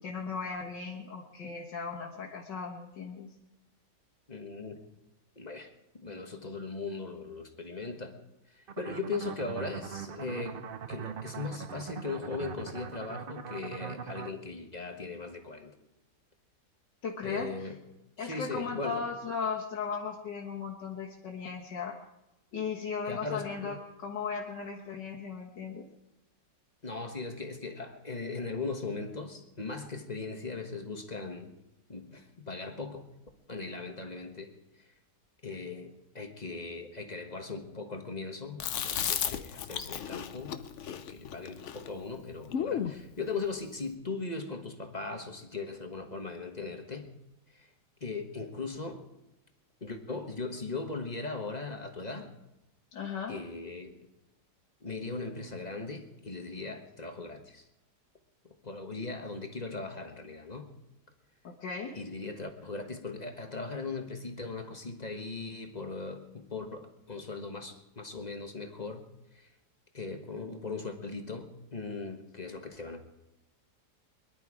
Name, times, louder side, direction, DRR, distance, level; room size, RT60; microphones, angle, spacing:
voice 1, 0.0-3.3 17.0-17.7 18.2-22.0 22.5-25.9 52.9-53.4 61.4-62.0, left 5 dB, 80° left, -2 dB, 2.1 m, -37 dB
voice 2, 4.3-4.8 5.4-8.2 8.5-10.6 10.9-15.7 17.2-17.8 18.2-19.0 23.0-23.5 26.8-31.5 31.9-33.1 33.5-34.5 34.8-34.9 35.4-47.1 47.5-47.7 48.0-49.0 49.8-52.3 53.3-53.9 54.8-57.7 58.6-60.7 61.9-69.0 69.3-69.5 69.9-73.0, left 3 dB, 25° left, 5 dB, 1.3 m, -39 dB
sound 1, 8.7-14.3, right 7 dB, 60° right, 0.5 m, -41 dB
Chewing mastication, 38.6-43.0, left 8 dB, 60° left, 0.8 m, -34 dB
22.5 x 11.5 x 4.9 m, 0.94 s
omnidirectional pair, 1.9 m